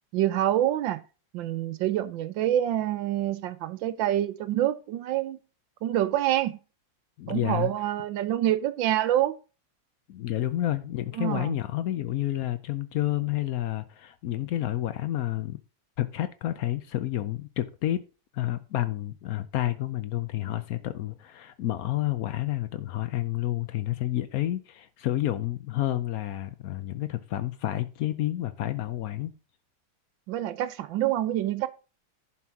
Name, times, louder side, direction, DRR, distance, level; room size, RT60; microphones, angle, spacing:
voice 1, 0.1-1.0 1.3-5.4 5.8-6.6 7.3-9.3 11.1-11.5 30.3-31.7, right 12 dB, 70° right, 1.3 m, -26 dB
voice 2, 7.2-7.7 10.1-15.6 16.0-18.0 18.3-29.3, left 14 dB, 85° left, 0.7 m, -30 dB
11.0 x 4.5 x 5.8 m
omnidirectional pair, 2.3 m